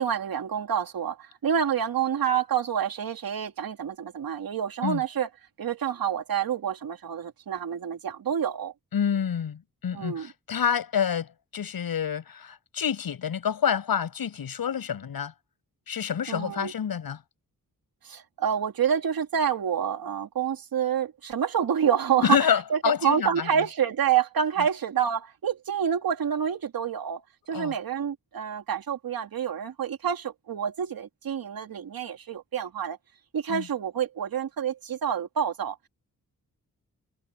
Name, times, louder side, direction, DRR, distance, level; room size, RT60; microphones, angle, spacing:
voice 1, 0.0-5.3 5.6-8.7 9.9-10.3 16.3-16.7 18.0-33.0 33.3-35.9, right 8 dB, 85° right, 2.6 m, -28 dB
voice 2, 8.9-15.3 15.9-17.2 22.2-23.5 27.5-27.7 33.5-33.7, left 8 dB, 90° left, 7.9 m, -28 dB
wide cardioid pair, 90°, 35 cm